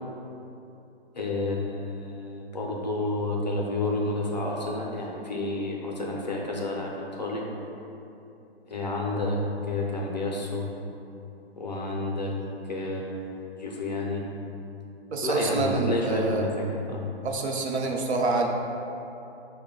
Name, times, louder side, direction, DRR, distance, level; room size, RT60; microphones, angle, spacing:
voice 1, 1.1-7.5 8.7-10.7 11.6-12.3 12.7-14.2 15.2-17.0, left 2 dB, 45° left, -1 dB, 0.4 m, -30 dB
voice 2, 15.1-16.5 17.2-18.5, right 3 dB, 85° right, 1 dB, 0.6 m, -26 dB
4.7 x 2.2 x 3.6 m, 2.9 s
hypercardioid pair, 180°, 32 cm